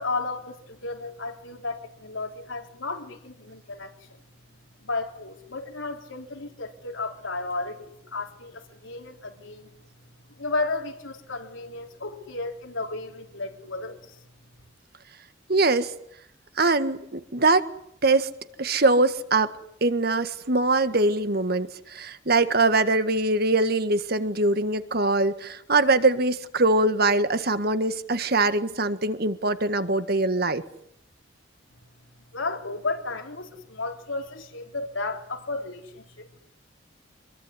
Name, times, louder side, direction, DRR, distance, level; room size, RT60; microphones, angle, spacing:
voice 1, 0.0-4.2 4.8-9.7 10.4-14.2 32.3-36.4, left 3 dB, 90° left, 4 dB, 4.0 m, -33 dB
voice 2, 15.5-15.9 16.6-17.7 18.0-18.3 18.6-19.5 19.8-30.6, right 2 dB, 50° right, 11 dB, 1.7 m, -22 dB
26.0 x 22.5 x 9.8 m, 0.71 s
head